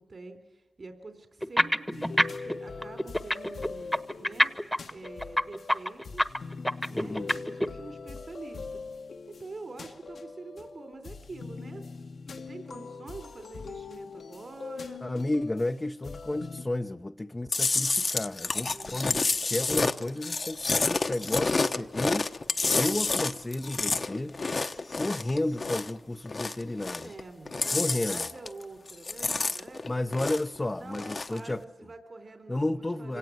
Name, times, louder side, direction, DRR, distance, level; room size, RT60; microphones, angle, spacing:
voice 1, 0.0-2.1 2.4-4.5 4.9-6.3 6.9-8.8 9.3-11.8 12.5-15.0 18.7-19.3 21.2-22.2 27.0-29.9 30.8-31.5 31.8-33.2, right 3 dB, 55° right, 3.8 m, -46 dB
sound 1, 1.4-2.5 2.8-7.7, equal, 5° left, 1.2 m, -25 dB
sound 2, 1.9-16.6, left 4 dB, 75° left, 1.3 m, -42 dB
voice 2, 6.9-7.3 15.0-22.3 22.7-24.4 24.9-27.1 27.7-28.2 29.9-31.6 32.5-33.2, left 1 dB, 25° left, 0.7 m, -32 dB
Chewing mastication, 17.5-26.0 26.3-27.2 27.5-28.6 28.9-30.6 30.9-31.4, left 3 dB, 50° left, 1.0 m, -29 dB
25.5 x 18.0 x 9.5 m
cardioid pair, 60°, 0 cm